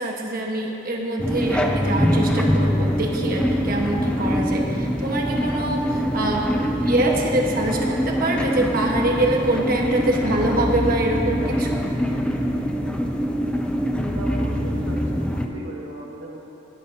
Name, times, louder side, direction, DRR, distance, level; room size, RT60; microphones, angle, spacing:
voice 1, 0.0-6.4 6.8-11.8, right 1 dB, 50° right, 0 dB, 1.3 m, -24 dB
sound 1, 1.2-15.5, equal, 5° left, 0.5 m, -23 dB
voice 2, 14.1-16.4, right 1 dB, 85° right, -4 dB, 2.0 m, -38 dB
16.5 x 11.5 x 2.8 m, 2.9 s
head